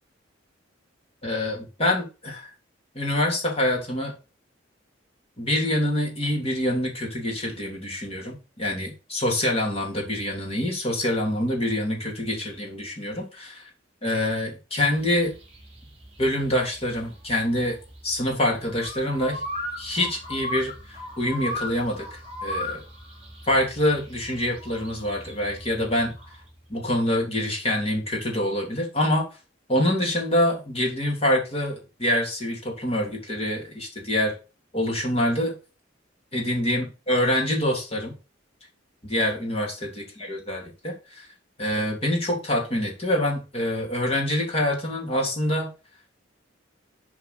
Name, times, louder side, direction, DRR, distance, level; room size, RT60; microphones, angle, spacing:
voice 1, 1.2-2.5 2.9-4.1 5.4-13.6 14.0-15.3 16.2-17.8 18.0-19.4 19.8-22.8 23.5-26.1 26.7-29.3 29.7-34.3 34.7-35.5 36.3-38.1 39.0-41.3 41.6-45.7, left 1 dB, 30° left, -1 dB, 3.3 m, -25 dB
sound 1, 15.0-26.4, left 1 dB, 30° right, 4.5 m, -37 dB
8.2 x 4.8 x 6.7 m, 0.32 s
head